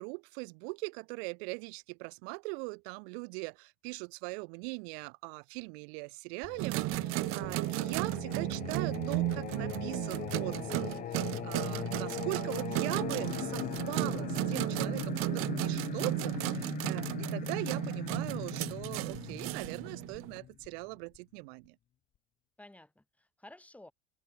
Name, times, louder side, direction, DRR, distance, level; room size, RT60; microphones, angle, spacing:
voice 1, 0.0-21.7, right 33 dB, 70° right, 1.5 m, -41 dB
Singing, 6.4-21.2, left 11 dB, 25° left, 0.7 m, -41 dB
sound 1, 6.6-20.4, right 22 dB, 40° right, 0.5 m, -34 dB
voice 2, 11.6-12.2 22.6-23.9, left 1 dB, 5° left, 3.9 m, -54 dB
sound 2, 12.9-17.9, left 34 dB, 60° left, 0.7 m, -45 dB
cardioid pair, 150°, 32 cm